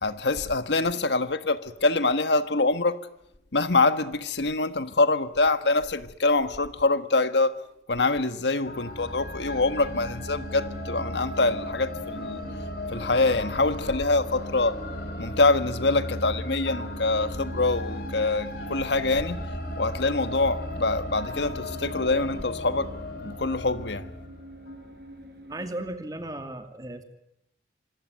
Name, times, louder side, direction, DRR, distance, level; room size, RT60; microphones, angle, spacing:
voice 1, 0.0-3.0 3.5-7.6 7.9-12.4 12.9-14.8 15.2-19.4 19.8-22.9 23.2-24.1, left 3 dB, 85° left, 1.5 m, -25 dB
sound 1, 8.7-24.9, left 1 dB, 60° left, 3.7 m, -36 dB
sound 2, 9.8-25.7, equal, 60° right, 6.2 m, -46 dB
voice 2, 25.5-27.0, right 1 dB, 20° right, 2.6 m, -35 dB
26.0 x 21.0 x 9.3 m
head